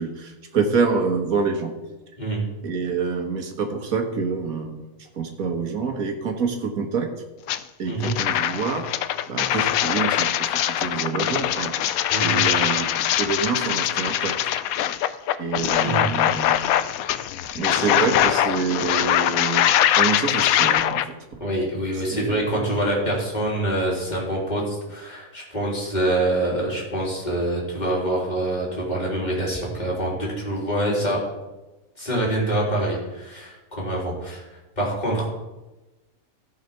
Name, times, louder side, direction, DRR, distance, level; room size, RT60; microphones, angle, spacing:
voice 1, 0.0-1.8 2.6-4.9 5.2-7.1 7.8-8.8 9.3-11.7 12.2-12.9 13.2-14.4 14.7-14.8 15.4-16.6 17.5-19.7 20.0-21.4 21.9-22.9, right 5 dB, 90° right, 4 dB, 1.8 m, -27 dB
sound 1, 7.5-7.6 8.0-21.1, left 11 dB, 85° left, 1.0 m, -22 dB
voice 2, 21.4-31.2 32.0-34.5 34.8-35.3, right 1 dB, 30° left, -4 dB, 3.3 m, -25 dB
14.0 x 5.6 x 5.8 m, 1.1 s
omnidirectional pair, 1.5 m